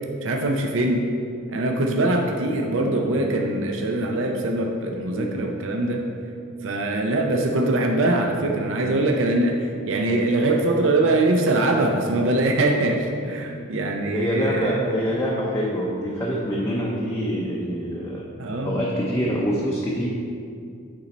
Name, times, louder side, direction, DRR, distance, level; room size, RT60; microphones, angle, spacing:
voice 1, 0.2-1.1 1.5-6.0 6.6-14.8 18.4-18.7, right 2 dB, 60° right, 2 dB, 0.5 m, -22 dB
voice 2, 5.1-5.5 14.1-18.2 18.6-20.1, equal, 15° left, -5 dB, 0.6 m, -25 dB
8.9 x 3.9 x 4.2 m, 2.4 s
head